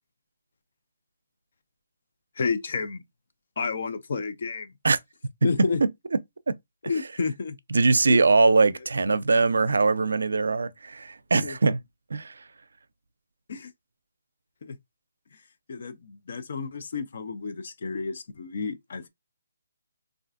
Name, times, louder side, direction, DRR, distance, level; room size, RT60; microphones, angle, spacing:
voice 1, 2.4-3.0 3.6-4.7 5.4-5.8 6.9-7.6 8.1-8.2 11.4-11.5 13.5-13.7 14.6-14.8 15.7-19.1, left 4 dB, 55° left, 0.5 m, -30 dB
voice 2, 7.7-11.8 12.1-12.4, right 3 dB, 85° right, 0.4 m, -21 dB
3.3 x 2.4 x 2.4 m
hypercardioid pair, 165°, 0 cm